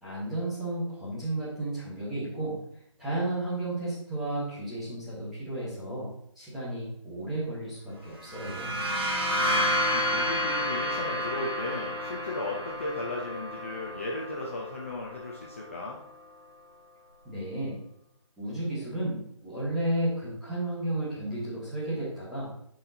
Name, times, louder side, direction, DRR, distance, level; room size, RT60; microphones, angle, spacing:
voice 1, 0.0-2.6 3.0-6.1 6.3-8.8 17.2-17.8 18.4-22.5, right 1 dB, ahead, -11 dB, 1.1 m, -33 dB
sound 1, 8.2-15.8, equal, 45° right, 1.8 m, -30 dB
voice 2, 9.1-16.0, left 2 dB, 25° left, -3 dB, 0.6 m, -36 dB
11.5 x 4.5 x 2.7 m, 0.71 s
figure-of-eight pair, 170°, 17 cm